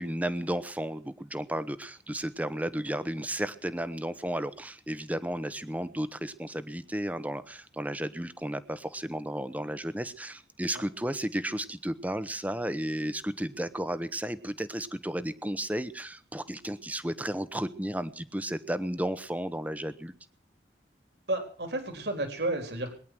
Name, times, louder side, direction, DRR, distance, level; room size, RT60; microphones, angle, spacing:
voice 1, 0.0-20.1, right 1 dB, 10° right, 13 dB, 1.0 m, -33 dB
voice 2, 21.3-22.9, right 2 dB, 70° right, 6 dB, 3.7 m, -32 dB
22.0 x 10.5 x 6.2 m, 0.42 s
head